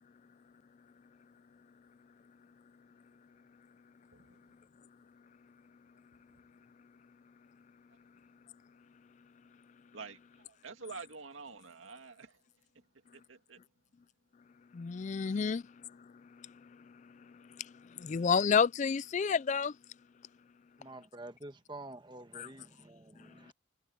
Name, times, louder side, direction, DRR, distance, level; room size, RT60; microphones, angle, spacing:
voice 1, 9.9-12.3 13.1-13.6, right 4 dB, 80° right, 2.1 m, -48 dB
voice 2, 14.7-19.8 22.3-22.5, left 6 dB, 35° left, 0.3 m, -32 dB
voice 3, 20.8-23.5, right 2 dB, 25° right, 1.3 m, -48 dB
head